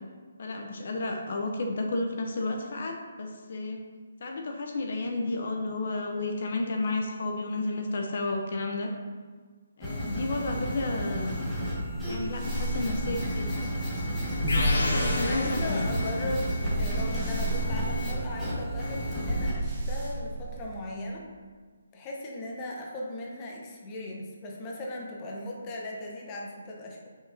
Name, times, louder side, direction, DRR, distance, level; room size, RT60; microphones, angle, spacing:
voice 1, 0.4-3.8 4.2-8.9 9.8-11.4 12.1-13.5 14.9-15.9, left 2 dB, 50° left, 2 dB, 0.8 m, -32 dB
sound 1, 9.8-19.5, equal, ahead, 1.7 m, -33 dB
sound 2, 12.0-20.9, equal, 20° right, 1.3 m, -32 dB
sound 3, 14.5-16.4, left 2 dB, 90° left, 1.8 m, -31 dB
voice 2, 14.5-21.2 21.9-27.1, left 1 dB, 20° left, -2 dB, 0.9 m, -38 dB
7.2 x 6.0 x 2.8 m, 1.5 s
hypercardioid pair, 165°, 0 cm